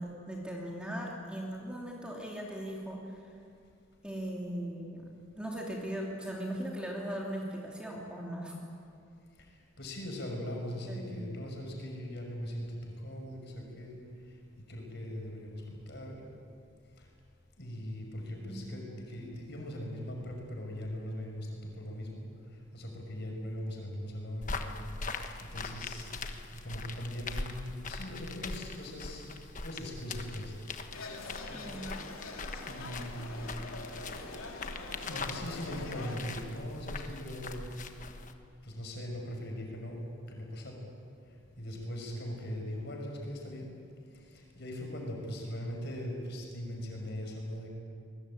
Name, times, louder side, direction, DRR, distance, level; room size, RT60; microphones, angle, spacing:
voice 1, 0.0-3.2 4.0-5.1 5.3-8.6 10.9-11.2 18.4-18.7 31.5-31.9, right 1 dB, 5° right, -3 dB, 2.8 m, -39 dB
voice 2, 9.8-14.0 14.7-16.3 17.6-22.2 22.7-24.7 25.4-26.1 26.5-29.3 29.6-30.6 31.5-31.8 32.7-33.5 35.1-37.7 38.6-40.0 40.3-40.8 41.6-43.7 44.3-47.7, equal, 50° left, 1 dB, 6.0 m, -40 dB
sound 1, 24.4-38.3, left 3 dB, 35° left, 1.3 m, -41 dB
sound 2, 30.9-36.2, left 2 dB, 80° left, 3.0 m, -44 dB
23.5 x 21.5 x 8.9 m, 2.4 s
head